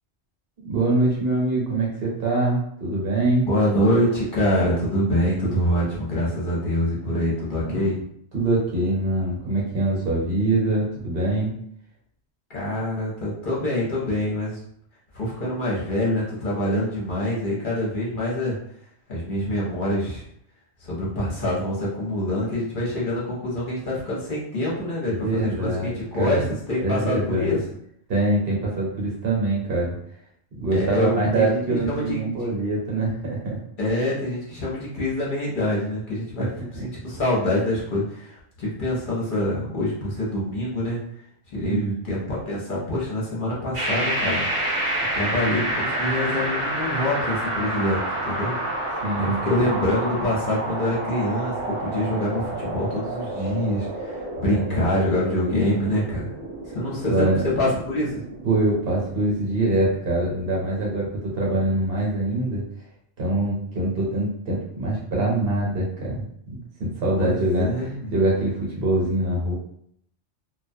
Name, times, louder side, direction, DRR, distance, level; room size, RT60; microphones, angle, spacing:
voice 1, 0.6-3.5 8.3-11.5 25.1-26.5 26.8-27.6 28.1-30.0 30.6-33.6 36.4-36.5 41.6-41.9 49.0-49.4 54.5-54.9 57.1-57.4 58.4-62.6 63.2-67.7 68.1-69.5, right 2 dB, 60° right, -3 dB, 0.9 m, -24 dB
voice 2, 3.5-8.0 12.5-14.6 15.1-18.5 19.1-20.2 20.8-27.6 30.7-31.6 31.9-32.2 33.8-41.0 41.5-44.4 45.1-48.5 49.2-56.3 56.7-57.3 57.6-58.2 67.2-68.1, left 1 dB, 50° left, -5 dB, 0.8 m, -25 dB
sound 1, 43.7-61.6, right 1 dB, 35° right, 0.7 m, -29 dB
2.2 x 2.2 x 2.6 m, 0.69 s
omnidirectional pair, 1.2 m